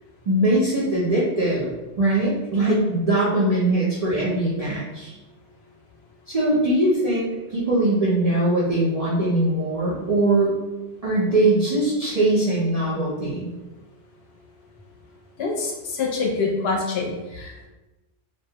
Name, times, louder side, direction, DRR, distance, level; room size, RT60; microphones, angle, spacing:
voice 1, 0.3-1.7 2.0-5.1 6.3-10.6 11.0-13.5, right 1 dB, 55° right, -7 dB, 0.4 m, -21 dB
voice 2, 15.4-17.7, left 4 dB, 70° left, -1 dB, 0.8 m, -26 dB
2.3 x 2.1 x 2.7 m, 1.0 s
omnidirectional pair, 1.1 m